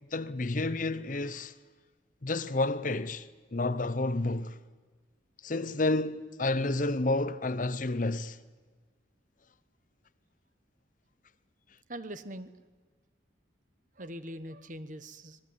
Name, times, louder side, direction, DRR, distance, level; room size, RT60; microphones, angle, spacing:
voice 1, 0.1-1.5 2.2-3.3 3.5-4.6 5.4-8.4, left 2 dB, 45° left, 0.8 m, -30 dB
voice 2, 11.9-12.5 14.0-15.4, right 1 dB, 45° right, 1.2 m, -42 dB
26.0 x 19.0 x 9.8 m
head